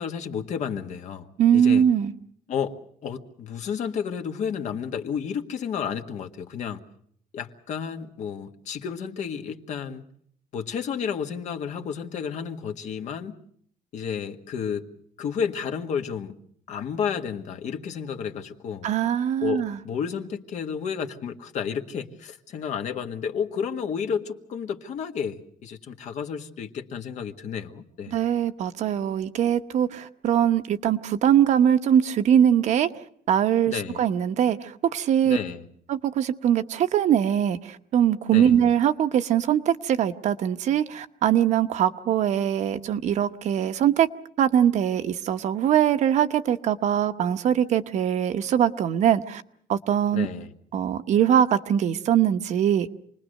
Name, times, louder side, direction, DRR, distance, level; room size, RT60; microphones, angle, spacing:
voice 1, 0.0-1.3 1.5-1.9 2.5-2.8 3.0-6.8 7.3-10.0 10.5-13.4 13.9-14.8 15.2-16.4 16.7-18.9 19.4-28.2 33.7-34.1 35.2-35.6 38.3-38.6 50.1-50.5, left 7 dB, 55° left, 5 dB, 1.7 m, -31 dB
voice 2, 1.4-2.1 18.8-19.8 28.1-32.9 33.3-35.4 35.9-44.1 44.4-49.4 49.7-50.3 50.7-52.9, right 9 dB, 55° right, 8 dB, 1.1 m, -22 dB
28.0 x 20.5 x 6.6 m, 0.65 s
cardioid pair, 180°, 15 cm